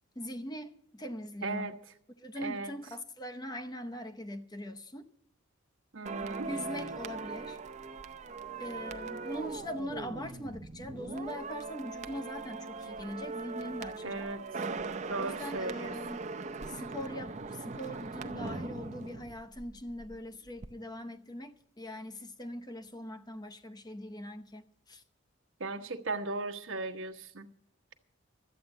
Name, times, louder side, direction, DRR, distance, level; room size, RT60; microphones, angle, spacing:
voice 1, 0.2-1.8 2.2-5.1 6.4-7.6 8.6-14.3 15.2-16.3 16.7-25.0, equal, 20° left, 0.7 m, -41 dB
voice 2, 1.4-1.7 2.4-2.7 5.9-6.5 14.0-14.4 15.1-15.9 25.6-27.5, right 3 dB, 70° right, 1.1 m, -36 dB
sound 1, 6.1-20.2 20.5-20.7, right 4 dB, 35° right, 0.6 m, -40 dB
13.0 x 8.5 x 7.9 m
head